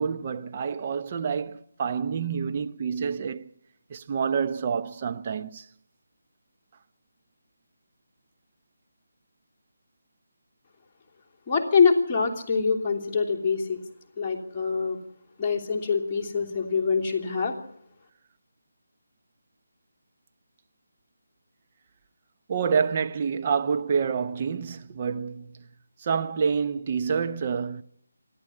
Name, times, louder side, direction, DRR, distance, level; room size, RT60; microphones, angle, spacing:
voice 1, 0.0-3.5 3.9-5.7 22.5-25.7 26.0-27.8, right 6 dB, 30° right, 0.8 m, -28 dB
voice 2, 11.5-13.8 14.2-15.0 15.4-17.5, left 5 dB, 20° left, 3.0 m, -24 dB
27.0 x 11.5 x 8.6 m
figure-of-eight pair, 155°, 0 cm